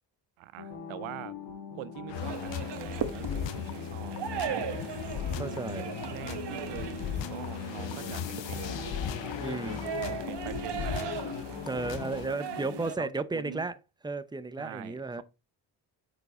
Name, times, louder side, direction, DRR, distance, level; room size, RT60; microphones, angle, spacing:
voice 1, 0.4-1.4 1.7-4.6 5.4-9.3 10.0-13.7 14.6-15.2, right 15 dB, 85° right, 0.6 m, -45 dB
sound 1, 0.6-12.8, left 5 dB, 50° left, 1.6 m, -42 dB
sound 2, 2.1-12.3, left 9 dB, 70° left, 0.8 m, -37 dB
sound 3, 2.1-13.0, right 7 dB, 60° right, 1.1 m, -39 dB
voice 2, 5.4-5.9 9.4-10.0 11.7-13.8 14.0-15.2, right 3 dB, 10° right, 0.7 m, -34 dB
6.4 x 4.9 x 3.8 m
supercardioid pair, 55°, 46 cm